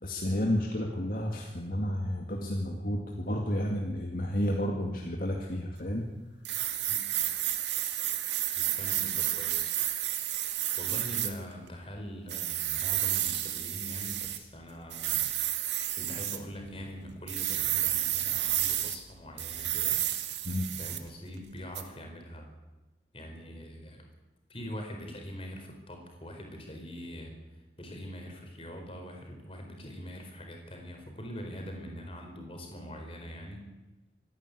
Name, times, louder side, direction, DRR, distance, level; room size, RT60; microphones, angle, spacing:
voice 1, 0.0-6.0 20.5-20.7, equal, 50° left, 0 dB, 2.2 m, -31 dB
sound 1, 6.4-11.3 12.3-14.4 14.9-16.4 17.3-18.9 19.4-21.1 21.7-21.8, right 12 dB, 90° right, 1.9 m, -31 dB
voice 2, 8.6-9.8 10.8-15.3 15.9-20.0 20.7-22.5 23.1-24.1 24.5-27.3 27.8-33.6, equal, 30° left, 3 dB, 4.6 m, -43 dB
25.5 x 11.0 x 9.7 m, 1.1 s
head